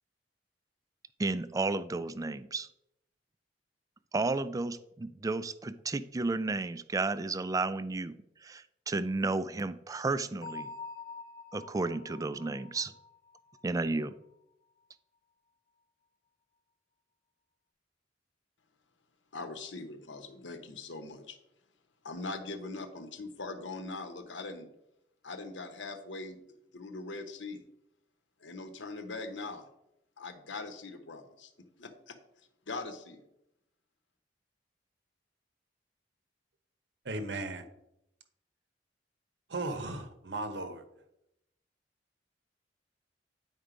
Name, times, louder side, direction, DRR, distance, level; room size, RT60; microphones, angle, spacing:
voice 1, 1.2-2.7 4.1-8.2 8.4-10.7 11.5-12.9 13.6-14.1, right 3 dB, 20° right, 15 dB, 0.3 m, -32 dB
Bell, 10.4-14.1, left 4 dB, 55° left, 0.9 m, -46 dB
voice 2, 19.3-21.4 22.0-24.7 25.2-26.4 26.7-27.6 28.4-29.7 30.2-32.2 32.7-33.2, left 3 dB, 90° left, 8 dB, 1.0 m, -41 dB
voice 3, 37.0-37.7 39.5-40.8, right 2 dB, 65° right, 9 dB, 0.9 m, -36 dB
9.5 x 4.5 x 5.0 m, 0.84 s
head